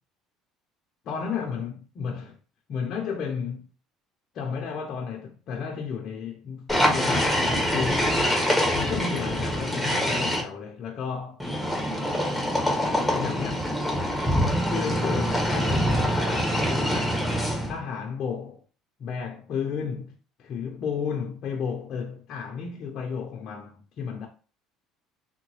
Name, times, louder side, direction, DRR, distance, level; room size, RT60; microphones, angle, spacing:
voice 1, 1.1-2.4 2.7-3.7 4.3-8.2 8.7-11.4 13.1-13.6 14.7-17.2 17.7-18.6 19.0-20.1 20.4-24.3, left 6 dB, 55° left, 0.6 m, -32 dB
sound 1, 6.7-10.4 11.4-17.8, equal, ahead, 1.1 m, -25 dB
3.7 x 2.2 x 3.0 m
supercardioid pair, 100°, 0 cm